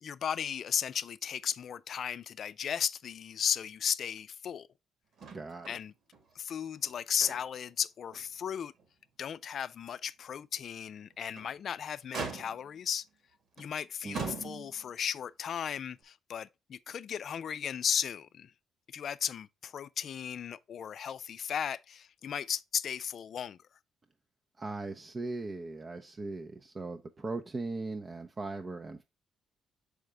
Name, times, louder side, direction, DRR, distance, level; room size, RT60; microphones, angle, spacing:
voice 1, 0.0-4.7 5.7-5.9 6.4-8.7 9.2-13.1 13.6-18.5 18.9-23.6, left 8 dB, 60° left, 0.4 m, -35 dB
Motor vehicle (road), 5.2-5.8 6.1-6.2 6.8-7.7 8.1-8.3 8.8-8.9 11.1-11.6 12.1-12.8 13.6-13.7 14.1-14.9 16.0-16.1, right 4 dB, 65° right, 1.7 m, -40 dB
voice 2, 5.3-5.7 14.0-14.4 24.6-29.0, right 3 dB, 30° right, 0.6 m, -39 dB
6.4 x 5.0 x 3.3 m
cardioid pair, 90°, 0 cm